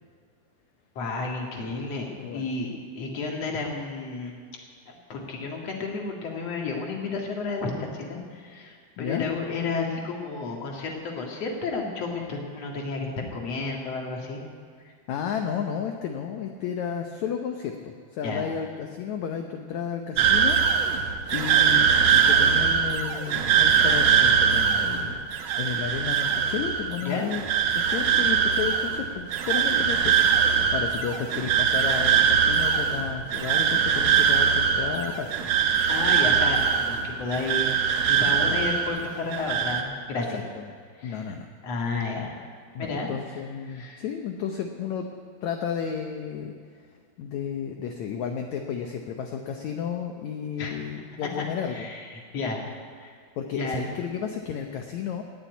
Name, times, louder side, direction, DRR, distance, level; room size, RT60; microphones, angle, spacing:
voice 1, 1.0-4.3 4.9-14.4 18.2-18.4 27.0-27.4 35.9-37.7 38.1-40.4 41.0-41.3 41.6-42.3 42.8-43.1 43.7-44.0 50.6-50.8 51.4-51.5 51.7-52.6 53.0-53.1 53.5-53.8, left 3 dB, 45° left, 0 dB, 2.7 m, -32 dB
voice 2, 9.0-9.3 14.8-25.2 25.6-27.4 27.7-35.3 38.4-38.6 40.1-40.6 41.0-41.4 41.9-42.0 42.7-45.1 45.4-46.5 47.2-51.9 53.4-55.2, left 7 dB, 80° left, 4 dB, 1.6 m, -32 dB
sound 1, 20.2-39.1 39.3-39.8, right 7 dB, 70° right, 1.6 m, -22 dB
18.0 x 7.3 x 9.2 m, 2.2 s
omnidirectional pair, 4.5 m